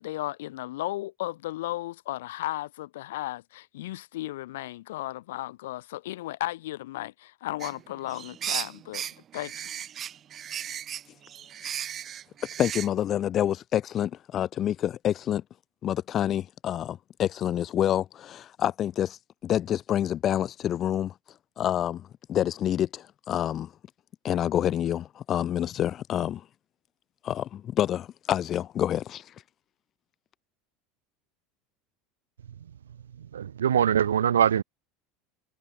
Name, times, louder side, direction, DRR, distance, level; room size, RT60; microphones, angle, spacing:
voice 1, 0.0-9.0 9.3-9.5, left 16 dB, 75° left, 6.6 m, -35 dB
sound 1, 7.6-12.9, right 9 dB, 40° right, 6.7 m, -36 dB
voice 2, 12.6-15.4 15.8-21.1 21.6-22.0 22.3-23.7 24.2-26.4 27.2-29.3, left 11 dB, 40° left, 1.8 m, -27 dB
voice 3, 33.2-34.6, right 9 dB, 85° right, 1.9 m, -23 dB
hypercardioid pair, 80°, 0 cm